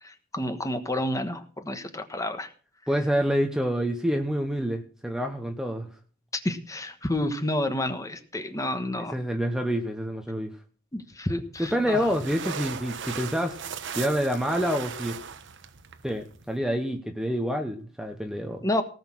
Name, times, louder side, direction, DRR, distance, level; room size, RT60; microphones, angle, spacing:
voice 1, 0.0-2.5 6.4-9.2 10.9-12.1 18.6-18.8, left 1 dB, 15° left, 9 dB, 1.3 m, -30 dB
voice 2, 2.9-5.9 8.9-10.5 11.6-13.6 14.0-15.2 16.0-18.7, equal, 5° right, 5 dB, 1.0 m, -27 dB
sound 1, 11.5-16.6, right 6 dB, 60° right, 1.0 m, -38 dB
18.0 x 6.4 x 6.1 m, 0.39 s
head